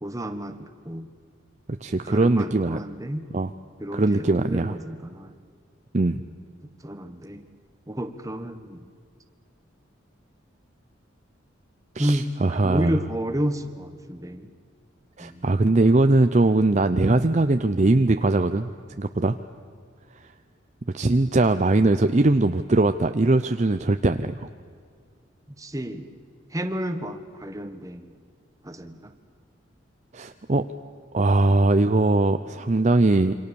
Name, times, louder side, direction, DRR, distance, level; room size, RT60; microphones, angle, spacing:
voice 1, 0.0-1.1 2.0-3.3 3.8-5.3 6.8-7.5 7.9-8.8 12.0-14.5 15.2-15.6 25.6-26.1 26.5-28.1 28.6-29.1, equal, 15° right, 8 dB, 1.3 m, -31 dB
voice 2, 1.7-2.8 3.3-3.5 3.9-4.8 5.9-6.2 11.9-12.9 15.2-18.7 19.0-19.4 20.2-20.3 20.9-24.5 30.1-30.7 31.1-33.4, right 2 dB, 35° right, 8 dB, 0.6 m, -21 dB
28.0 x 25.0 x 7.0 m, 2.1 s
head